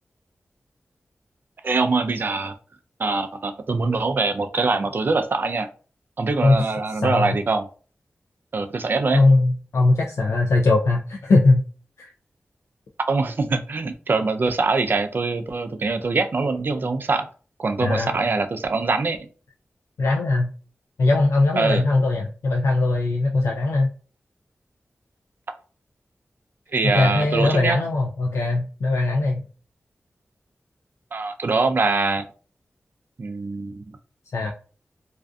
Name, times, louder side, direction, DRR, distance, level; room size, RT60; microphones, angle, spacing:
voice 1, 1.6-2.5 3.0-5.7 6.2-7.7 8.5-9.2 13.1-17.3 17.6-19.2 21.6-21.9 26.7-27.8 31.1-32.3 33.2-33.8, right 3 dB, 45° right, 7 dB, 0.3 m, -23 dB
voice 2, 6.9-7.3 9.1-11.6 12.0-12.1 17.8-18.2 20.0-20.5 21.0-23.9 26.8-29.4 34.3-34.5, left 2 dB, 85° left, -1 dB, 0.3 m, -20 dB
2.4 x 2.4 x 2.2 m, 0.39 s
wide cardioid pair, 100°, 5 cm